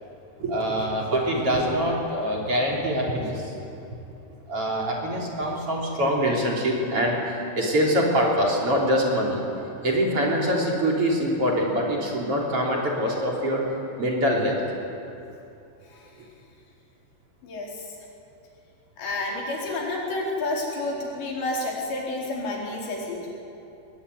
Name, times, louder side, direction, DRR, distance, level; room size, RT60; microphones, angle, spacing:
voice 1, 0.4-3.5 4.5-9.4 9.8-13.7 14.0-14.6 16.2-16.3, equal, 35° right, -2 dB, 3.8 m, -24 dB
voice 2, 19.0-23.3, left 2 dB, 85° left, -2 dB, 6.4 m, -30 dB
23.0 x 19.5 x 9.8 m, 2.8 s
omnidirectional pair, 4.9 m